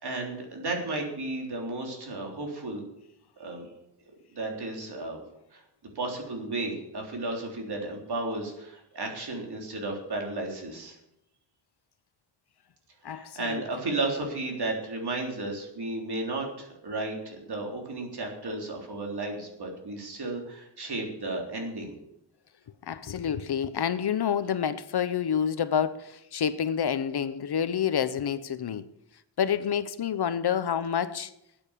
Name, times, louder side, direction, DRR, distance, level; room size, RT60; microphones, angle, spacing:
voice 1, 0.0-2.8 3.4-3.7 4.3-5.2 5.5-5.6 6.0-11.0 13.1-21.9, right 2 dB, 60° right, 3.8 m, -33 dB
voice 2, 13.0-13.6 22.8-28.8 29.4-31.3, left 8 dB, 60° left, 0.8 m, -28 dB
13.0 x 9.0 x 7.3 m
wide cardioid pair, 145°, 44 cm